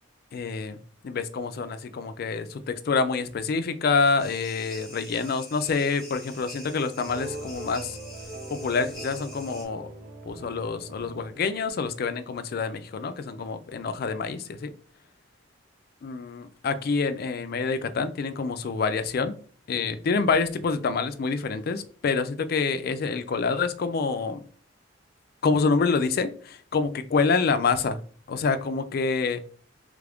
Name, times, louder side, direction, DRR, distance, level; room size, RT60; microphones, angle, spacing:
voice 1, 0.3-0.8 1.0-8.0 8.5-9.9 10.2-14.7 16.0-19.3 19.7-24.4 25.4-28.0 28.3-29.4, left 4 dB, 50° left, 10 dB, 0.3 m, -27 dB
sound 1, 4.2-9.7, equal, ahead, 1.0 m, -45 dB
sound 2, 7.0-12.1, right 2 dB, 45° right, 0.7 m, -41 dB
3.3 x 2.4 x 3.4 m, 0.43 s
head